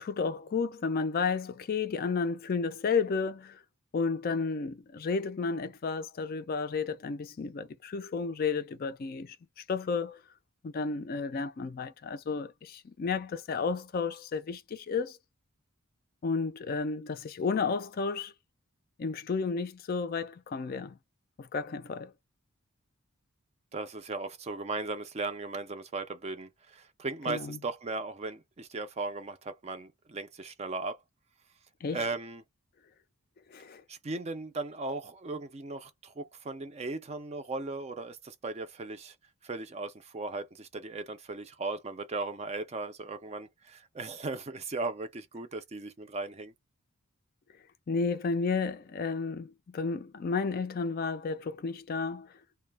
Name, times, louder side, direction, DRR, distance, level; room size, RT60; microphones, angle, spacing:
voice 1, 0.0-3.6 3.9-10.2 10.6-15.2 16.2-18.3 19.0-21.0 21.4-22.1 27.3-27.6 31.8-32.0 33.5-33.8 47.9-52.3, left 4 dB, 40° left, 0.3 m, -32 dB
voice 2, 23.7-31.0 31.9-32.4 33.9-39.2 39.4-46.5, right 3 dB, 30° right, 0.4 m, -37 dB
2.1 x 2.0 x 3.3 m
head